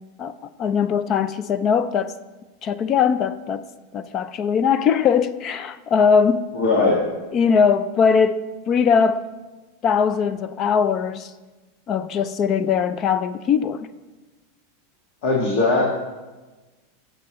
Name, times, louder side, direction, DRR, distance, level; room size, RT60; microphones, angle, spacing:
voice 1, 0.6-2.1 2.6-3.6 3.9-6.4 7.3-9.2 9.8-11.3 11.9-13.9, left 6 dB, 30° left, 0.4 m, -20 dB
voice 2, 6.5-7.0 15.2-15.8, left 3 dB, 55° left, 1.7 m, -19 dB
17.0 x 7.6 x 3.0 m
supercardioid pair, 150°, 0 cm